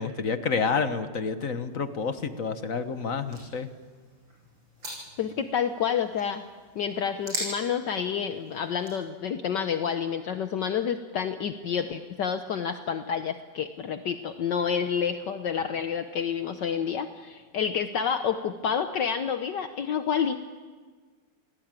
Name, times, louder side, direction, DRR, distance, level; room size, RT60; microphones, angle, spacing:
voice 1, 0.0-3.7, left 5 dB, 45° left, 10 dB, 1.4 m, -29 dB
sound 1, 1.3-9.1, right 1 dB, 70° right, 8.9 m, -42 dB
voice 2, 5.2-6.4 6.7-20.5, left 7 dB, 65° left, 8 dB, 1.5 m, -29 dB
28.5 x 19.0 x 9.0 m, 1.5 s
omnidirectional pair, 2.2 m